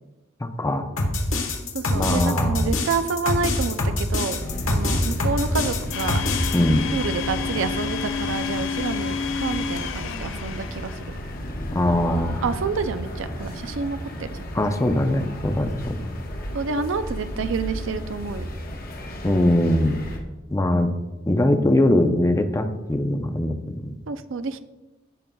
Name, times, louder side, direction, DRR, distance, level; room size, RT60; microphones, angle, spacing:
voice 1, 0.4-0.9 1.9-2.7 6.5-6.9 11.7-12.4 14.5-16.0 19.2-20.0 20.5-20.9 21.3-23.9, left 1 dB, 15° left, 7 dB, 0.5 m, -21 dB
sound 1, 1.0-6.6, left 2 dB, 80° left, 1.3 m, -24 dB
voice 2, 1.7-4.4 4.7-6.2 6.9-11.0 12.4-14.4 16.5-18.5 24.1-24.6, right 4 dB, 65° right, 11 dB, 0.5 m, -28 dB
sound 2, 4.4-20.2, equal, 45° left, 1.1 m, -33 dB
Domestic sounds home sounds, 5.9-11.4, left 6 dB, 65° left, 0.5 m, -30 dB
15.0 x 5.3 x 2.3 m, 1.1 s
head